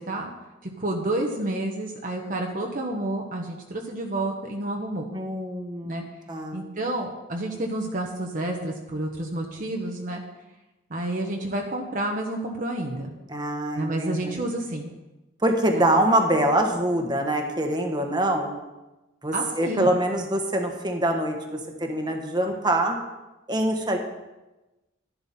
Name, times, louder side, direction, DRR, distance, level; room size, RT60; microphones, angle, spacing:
voice 1, 0.8-5.1 5.9-6.0 6.5-10.2 10.9-13.1 13.7-14.9 15.7-15.8 19.3-19.9, right 1 dB, 45° right, 0 dB, 1.2 m, -29 dB
voice 2, 5.1-6.6 13.3-14.4 15.4-18.6 19.2-23.0 23.5-24.0, right 1 dB, 20° right, 3 dB, 1.4 m, -24 dB
12.5 x 11.0 x 4.4 m, 1.1 s
head